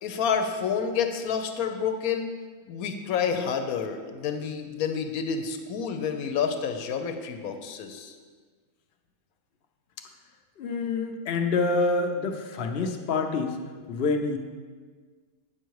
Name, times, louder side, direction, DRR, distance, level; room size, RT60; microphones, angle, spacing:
voice 1, 0.0-2.3 2.7-8.1, left 6 dB, 85° left, 7 dB, 1.2 m, -29 dB
voice 2, 10.6-13.6 13.9-14.4, left 3 dB, 50° left, 4 dB, 0.8 m, -27 dB
9.0 x 6.3 x 4.7 m, 1.5 s
omnidirectional pair, 1.5 m